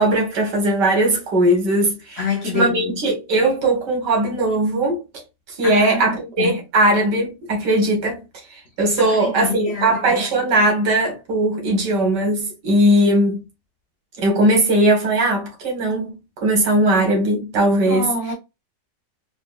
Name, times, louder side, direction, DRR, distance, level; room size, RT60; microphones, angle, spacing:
voice 1, 0.0-2.2 2.5-5.0 5.5-8.2 8.5-13.4 14.2-18.1, right 1 dB, 75° right, 1.9 m, -19 dB
voice 2, 2.2-2.9 5.6-6.6 9.0-10.2 17.8-18.3, left 4 dB, 50° left, 0.8 m, -27 dB
4.3 x 2.3 x 2.3 m
omnidirectional pair, 1.9 m